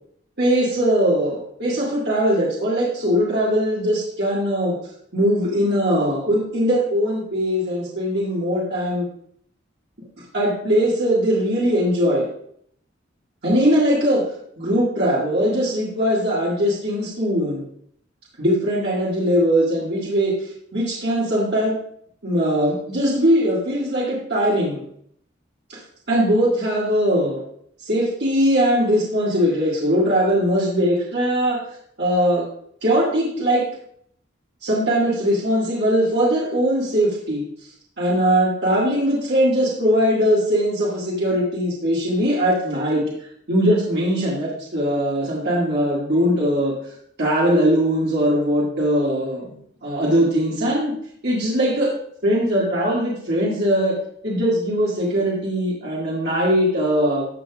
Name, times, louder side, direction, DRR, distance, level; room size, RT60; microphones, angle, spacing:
voice 1, 0.4-4.7 5.1-9.1 10.3-12.3 13.4-14.2 14.6-17.6 18.4-21.8 22.2-24.8 25.7-25.8 26.1-27.4 27.8-31.6 32.0-32.4 32.8-33.6 34.6-37.4 38.0-43.0 43.5-46.7 47.2-49.4 49.8-50.9 51.2-51.9 52.2-53.9 54.2-57.2, equal, 60° right, -6 dB, 2.0 m, -20 dB
12.0 x 6.6 x 2.4 m, 0.66 s
head